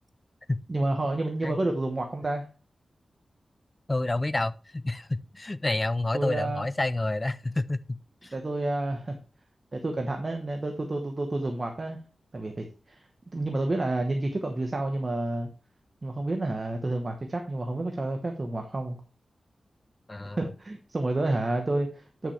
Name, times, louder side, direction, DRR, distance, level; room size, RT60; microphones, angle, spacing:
voice 1, 0.7-2.4 6.1-6.7 8.3-9.2 9.7-12.0 12.3-13.0 13.3-15.5 16.0-19.0 20.4-22.3, right 2 dB, 30° right, 1.1 m, -29 dB
voice 2, 3.9-8.3 20.1-20.5, left 2 dB, 20° left, 0.4 m, -29 dB
9.7 x 6.0 x 3.3 m
wide cardioid pair, 130°, 0 cm